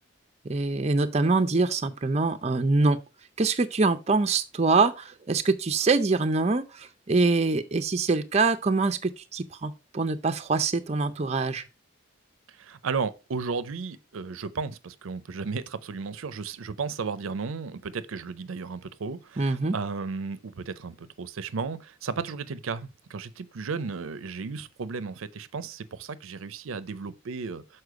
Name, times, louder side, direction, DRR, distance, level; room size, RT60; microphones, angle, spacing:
voice 1, 0.5-3.0 3.4-11.6 19.4-19.8, right 3 dB, 30° right, 0.5 m, -24 dB
voice 2, 12.6-27.6, right 5 dB, 80° right, 0.5 m, -34 dB
6.6 x 4.3 x 4.7 m
head